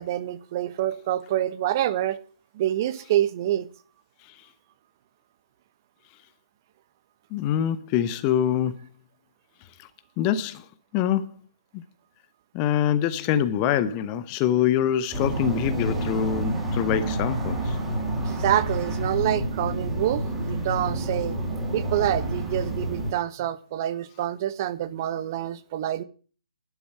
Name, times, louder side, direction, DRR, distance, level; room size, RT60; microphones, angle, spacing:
voice 1, 0.0-2.2 2.5-3.7 18.2-21.4 21.7-26.0, right 12 dB, 35° right, 1.2 m, -27 dB
voice 2, 7.3-8.8 10.2-10.6 10.9-11.3 11.7-11.8 12.5-17.8, left 10 dB, 25° left, 0.9 m, -24 dB
sound 1, 15.1-23.1, right 1 dB, 10° right, 4.9 m, -28 dB
12.0 x 7.1 x 9.9 m
figure-of-eight pair, 135°, 3 cm